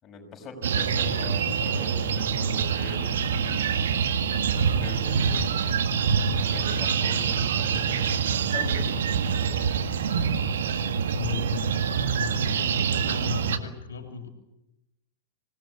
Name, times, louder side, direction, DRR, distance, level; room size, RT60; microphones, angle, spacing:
voice 1, 0.0-3.7 4.5-8.0 8.3-9.7, left 3 dB, 25° left, 1 dB, 6.5 m, -42 dB
sound 1, 0.6-13.6, right 6 dB, 65° right, 1.8 m, -25 dB
voice 2, 11.0-11.8 12.1-14.3, left 6 dB, 70° left, 5 dB, 3.1 m, -36 dB
26.0 x 19.0 x 8.7 m, 0.94 s
figure-of-eight pair, 100°, 0 cm